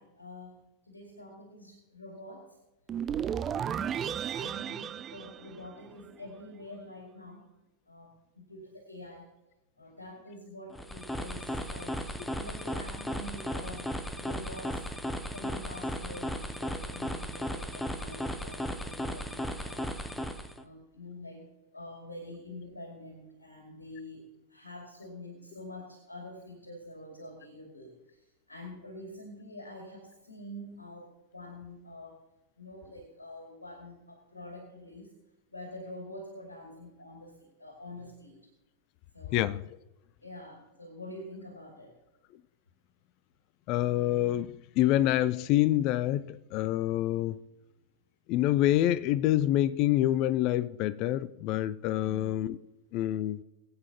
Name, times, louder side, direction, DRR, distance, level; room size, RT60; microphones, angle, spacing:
voice 1, 0.0-2.6 3.4-7.5 7.9-9.3 9.8-12.0 12.4-20.0 20.6-21.4 21.7-32.2 32.6-35.1 35.5-38.4 39.1-39.5 40.2-41.9, left 1 dB, 80° left, 2.4 m, -46 dB
sound 1, 2.9-6.1, right 9 dB, 25° right, 0.4 m, -34 dB
sound 2, 10.7-20.6, equal, 5° left, 0.8 m, -36 dB
voice 2, 43.7-47.4 48.3-52.6 52.9-53.4, left 13 dB, 40° left, 0.5 m, -27 dB
21.5 x 8.5 x 2.9 m
figure-of-eight pair, 90°, 0 cm